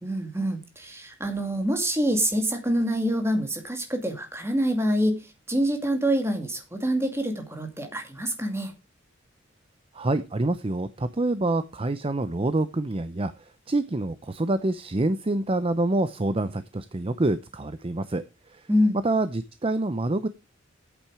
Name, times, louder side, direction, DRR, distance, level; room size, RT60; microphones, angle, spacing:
voice 1, 0.0-5.2 5.5-8.7 18.7-19.0, equal, 15° right, 4 dB, 2.2 m, -26 dB
voice 2, 9.9-13.3 13.7-18.2 18.5-18.6 19.0-20.3, right 2 dB, 30° right, 12 dB, 0.6 m, -26 dB
10.5 x 8.7 x 4.8 m, 0.28 s
head